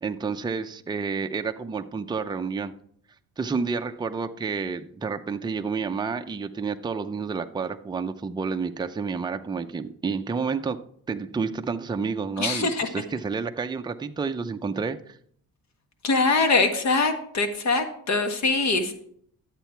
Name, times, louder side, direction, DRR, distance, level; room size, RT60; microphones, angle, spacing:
voice 1, 0.0-2.7 3.4-10.8 11.1-15.2, right 5 dB, 10° right, 6 dB, 0.5 m, -30 dB
voice 2, 12.4-12.9 16.0-18.9, left 3 dB, 50° left, 6 dB, 1.5 m, -23 dB
12.0 x 8.2 x 4.5 m, 0.64 s
cardioid pair, 120°, 35 cm